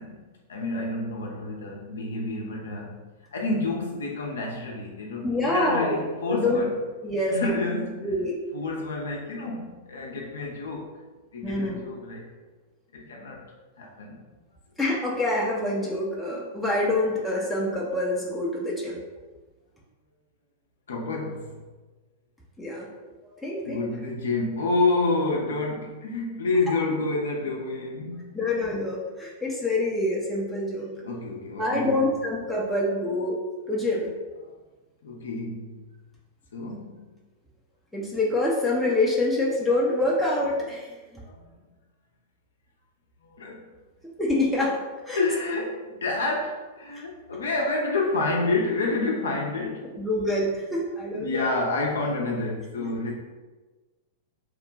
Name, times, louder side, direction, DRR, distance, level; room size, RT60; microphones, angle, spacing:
voice 1, 0.0-3.0 3.3-6.8 7.3-8.2 8.5-10.9 11.3-12.3 12.9-13.4 13.8-14.2 20.9-21.6 23.7-28.4 31.0-32.1 34.4-34.5 35.0-35.9 36.5-37.0 41.2-41.5 43.2-43.7 45.1-50.0 51.1-53.1, left 3 dB, 65° left, 0 dB, 0.5 m, -29 dB
voice 2, 5.2-6.0 6.3-6.6 7.0-7.5 8.0-8.3 11.4-11.8 14.8-19.0 22.6-22.9 23.4-23.9 26.7-26.8 28.3-30.9 31.6-33.4 33.7-34.1 37.9-40.9 41.1-41.3 44.2-45.2 50.0-51.6 52.8-52.9, left 2 dB, 5° left, -6 dB, 0.5 m, -26 dB
2.9 x 2.2 x 3.8 m, 1.2 s
figure-of-eight pair, 95°, 0 cm